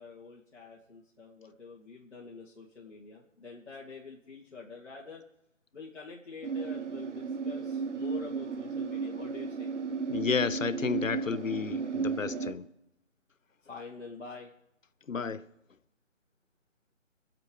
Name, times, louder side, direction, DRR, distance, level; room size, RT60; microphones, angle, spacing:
voice 1, 0.0-5.2 5.7-9.7 13.7-14.5, left 4 dB, 60° left, 2.8 m, -46 dB
sound 1, 6.4-12.5, right 5 dB, 65° right, 1.3 m, -34 dB
voice 2, 10.1-12.7 15.1-15.5, left 5 dB, 85° left, 1.0 m, -31 dB
22.0 x 8.0 x 5.3 m
figure-of-eight pair, 165°, 38 cm